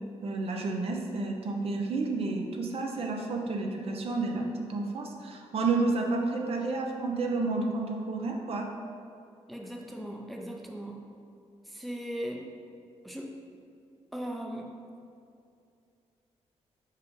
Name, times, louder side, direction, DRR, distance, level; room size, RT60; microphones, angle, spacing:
voice 1, 0.2-8.7, right 3 dB, 60° right, 1 dB, 0.7 m, -30 dB
voice 2, 9.5-11.0 11.7-12.5 13.0-13.4 14.1-14.7, equal, ahead, 0 dB, 0.6 m, -38 dB
4.8 x 4.8 x 4.7 m, 2.5 s
cardioid pair, 115°, 11 cm